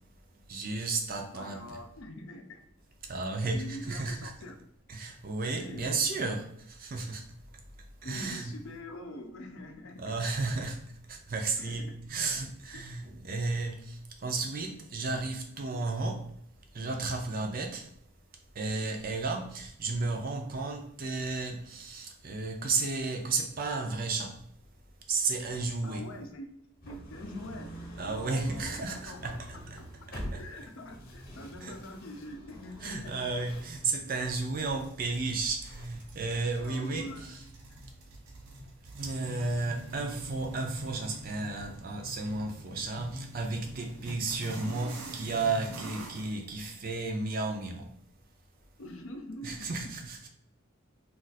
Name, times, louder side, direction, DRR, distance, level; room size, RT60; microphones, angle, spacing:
voice 1, 0.5-1.8 3.1-4.3 4.9-7.3 8.0-8.6 10.0-10.8 11.1-16.3 16.7-17.9 18.6-24.4 25.1-26.1 28.0-29.8 30.3-30.4 31.6-31.8 32.8-37.4 39.0-47.9 49.4-50.3, right 3 dB, 40° right, 0.5 m, -33 dB
voice 2, 1.3-2.7 3.5-4.6 5.5-6.0 8.0-10.2 10.5-10.7 11.6-12.0 12.7-12.8 25.8-26.5 26.9-27.7 28.0-29.9 30.4-33.2 36.6-37.4 48.8-49.9, left 1 dB, 65° left, 0.5 m, -44 dB
sound 1, 26.8-37.1, equal, 40° left, 0.9 m, -46 dB
sound 2, 34.2-46.4, right 1 dB, 90° right, 0.7 m, -45 dB
2.5 x 2.4 x 4.1 m
head